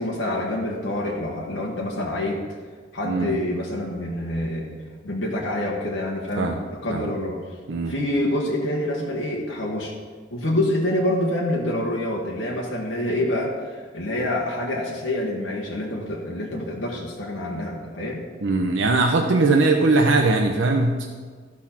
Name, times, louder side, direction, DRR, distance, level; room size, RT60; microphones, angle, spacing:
voice 1, 0.0-2.4 2.9-4.7 5.0-7.4 7.8-10.0 10.3-18.2, left 1 dB, 90° left, -2 dB, 1.4 m, -26 dB
voice 2, 3.0-3.4 6.4-6.6 6.9-7.1 7.7-7.9 18.4-21.1, right 3 dB, 85° right, 2 dB, 0.7 m, -20 dB
13.5 x 6.2 x 4.4 m, 1.5 s
head